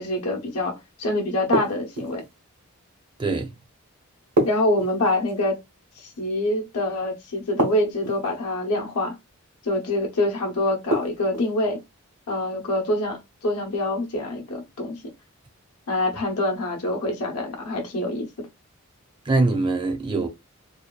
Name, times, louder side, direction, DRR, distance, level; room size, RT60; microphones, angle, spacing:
voice 1, 0.0-2.2 4.4-5.6 6.0-9.2 9.6-11.8 12.3-15.0 15.9-18.5, left 1 dB, 85° left, 0.8 m, -25 dB
sound 1, 1.5-2.3 4.4-5.4 7.6-8.3 10.9-11.5, right 2 dB, 80° right, 0.9 m, -26 dB
voice 2, 3.2-3.6 19.3-20.3, right 3 dB, 20° right, 0.4 m, -23 dB
2.7 x 2.2 x 2.2 m
head